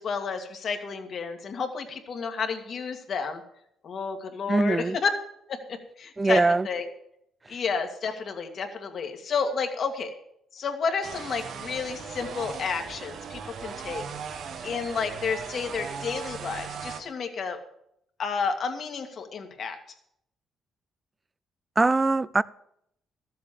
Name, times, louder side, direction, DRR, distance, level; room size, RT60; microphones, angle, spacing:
voice 1, 0.0-3.4 3.8-5.1 5.5-6.9 7.5-10.1 10.5-14.0 14.3-17.6 18.2-19.8, left 5 dB, 55° left, 5 dB, 2.0 m, -31 dB
voice 2, 4.5-5.0 6.2-6.7 21.8-22.4, right 3 dB, 20° right, 20 dB, 0.4 m, -22 dB
sound 1, 11.0-17.0, right 6 dB, 65° right, 1.2 m, -38 dB
13.5 x 7.7 x 7.4 m, 0.73 s
cardioid pair, 90°, 0 cm